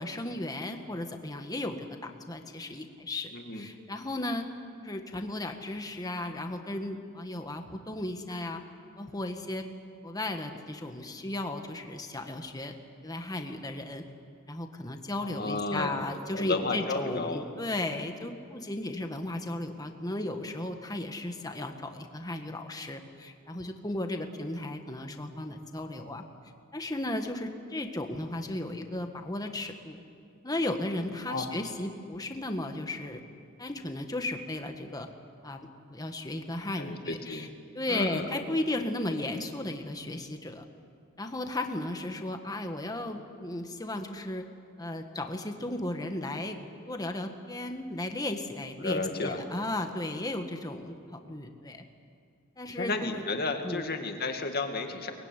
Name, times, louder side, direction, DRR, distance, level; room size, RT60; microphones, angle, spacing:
voice 1, 0.0-4.5 4.8-8.6 9.0-9.7 10.0-12.7 13.0-14.0 14.5-26.2 26.7-30.0 30.4-33.2 33.6-35.1 35.4-35.6 35.9-37.5 37.7-40.7 41.2-44.5 44.8-46.6 46.9-51.8 52.6-53.2 53.6-53.9, left 1 dB, 15° left, 5 dB, 1.6 m, -35 dB
voice 2, 3.3-3.7 15.2-15.9 16.3-17.4 31.3-31.5 36.8-37.5 37.9-38.3 48.8-49.4 52.8-55.1, left 3 dB, 45° left, 4 dB, 2.2 m, -32 dB
23.5 x 21.0 x 9.9 m, 2.3 s
head